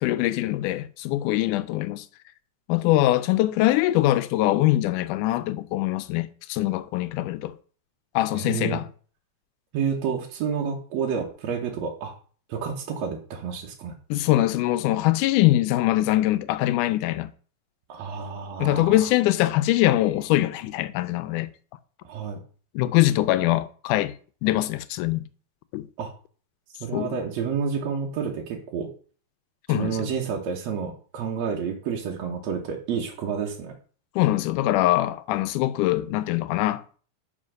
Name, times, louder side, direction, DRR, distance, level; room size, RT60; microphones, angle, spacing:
voice 1, 0.0-2.1 2.7-7.6 8.2-8.9 14.1-17.3 18.6-21.5 22.8-24.1 24.4-25.3 25.7-25.9 26.9-27.2 29.7-30.1 34.2-36.8, left 15 dB, 90° left, 2.1 m, -23 dB
voice 2, 8.3-8.8 9.7-12.1 12.5-14.0 17.9-19.1 22.0-22.4 26.0-26.1 26.8-28.9 29.7-33.7, right 6 dB, 65° right, 2.1 m, -29 dB
5.5 x 5.2 x 6.3 m
omnidirectional pair, 3.5 m